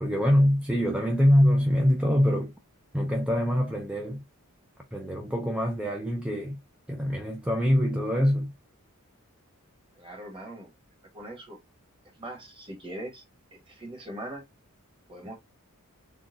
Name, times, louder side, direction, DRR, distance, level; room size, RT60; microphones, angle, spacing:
voice 1, 0.0-2.5 2.9-4.2 4.9-6.6 6.9-8.5, equal, 5° right, 0.4 m, -24 dB
voice 2, 10.0-10.7 11.1-11.6 12.2-13.2 13.5-14.4 15.1-15.3, right 1 dB, 25° right, 1.3 m, -40 dB
3.8 x 2.2 x 2.5 m
head